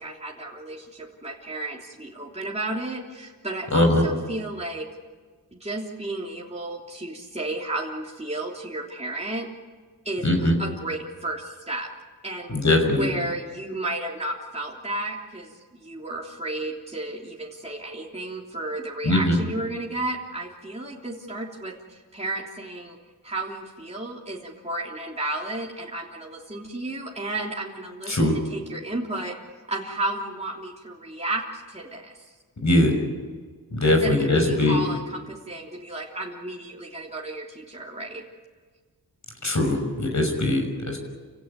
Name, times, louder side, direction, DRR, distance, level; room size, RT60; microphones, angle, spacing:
voice 1, 0.0-4.9 5.5-9.5 10.0-11.9 12.2-12.6 12.9-15.6 15.8-23.0 23.2-29.4 29.7-32.2 33.9-38.2, right 2 dB, 15° right, -2 dB, 3.3 m, -33 dB
voice 2, 3.7-4.0 10.2-10.6 12.5-13.1 19.0-19.4 28.1-28.3 32.6-32.9 33.7-34.8 39.4-41.0, left 1 dB, 50° left, 4 dB, 6.0 m, -21 dB
28.0 x 16.5 x 9.7 m, 1.5 s
cardioid pair, 60°, 38 cm